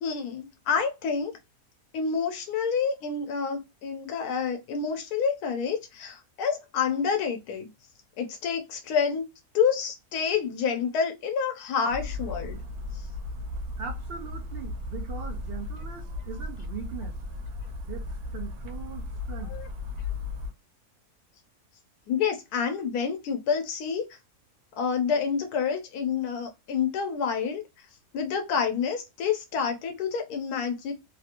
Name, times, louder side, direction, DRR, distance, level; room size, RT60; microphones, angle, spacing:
voice 1, 0.0-1.3 1.9-7.7 8.2-9.2 9.5-12.6 12.9-13.0 19.5-19.7 22.1-24.1 24.8-27.9 28.1-30.9, left 6 dB, 85° left, 1.1 m, -28 dB
sound 1, 11.9-20.5, left 2 dB, 90° right, 1.4 m, -36 dB
voice 2, 13.8-17.2 17.9-18.1 18.3-19.6, right 6 dB, 60° right, 0.6 m, -40 dB
3.2 x 2.5 x 2.7 m
omnidirectional pair, 1.6 m